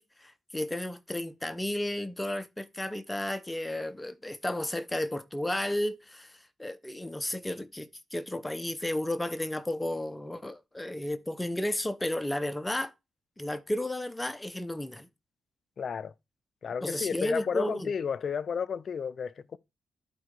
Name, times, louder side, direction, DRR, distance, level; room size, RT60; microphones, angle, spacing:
voice 1, 0.0-12.9 13.4-15.1 16.8-17.9, left 1 dB, 10° left, 0.7 m, -33 dB
voice 2, 15.8-16.1 16.6-19.6, left 6 dB, 45° left, 0.5 m, -32 dB
11.0 x 4.5 x 4.8 m
wide cardioid pair, 160°, 0 cm